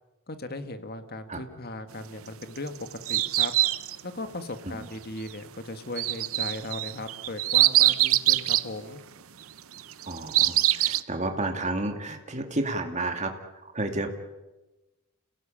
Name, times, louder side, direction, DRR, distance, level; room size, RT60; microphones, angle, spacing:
voice 1, 0.3-2.7 3.1-3.5 4.0-9.0, left 2 dB, 45° left, 9 dB, 1.8 m, -37 dB
sound 1, 2.4-4.0 6.0-8.7 9.8-11.0, right 15 dB, 80° right, 0.8 m, -23 dB
voice 2, 10.1-13.3 13.7-14.1, right 2 dB, 35° right, 5 dB, 2.5 m, -31 dB
29.0 x 17.0 x 8.8 m, 1.1 s
head